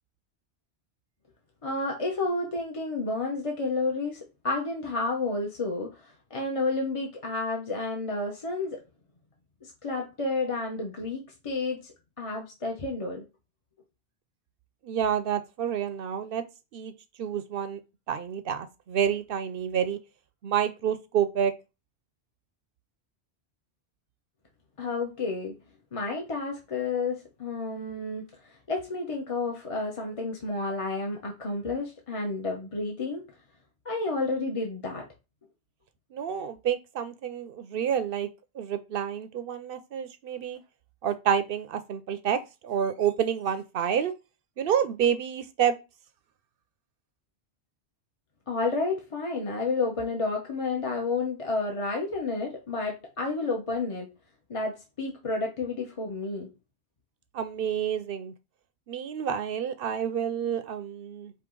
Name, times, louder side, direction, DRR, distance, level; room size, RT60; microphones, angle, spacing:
voice 1, 1.6-8.8 9.6-13.2 24.8-25.5 25.9-33.2 33.8-35.0 48.5-54.1 54.5-56.5, left 3 dB, 35° left, 0.8 m, -31 dB
voice 2, 14.8-16.4 16.7-16.9 17.2-17.8 18.1-20.0 20.4-21.5 36.1-38.3 38.5-40.6 41.0-44.1 44.6-45.7 57.3-58.3 58.9-61.3, right 8 dB, 65° right, 0.7 m, -28 dB
4.8 x 2.7 x 3.7 m
omnidirectional pair, 1.1 m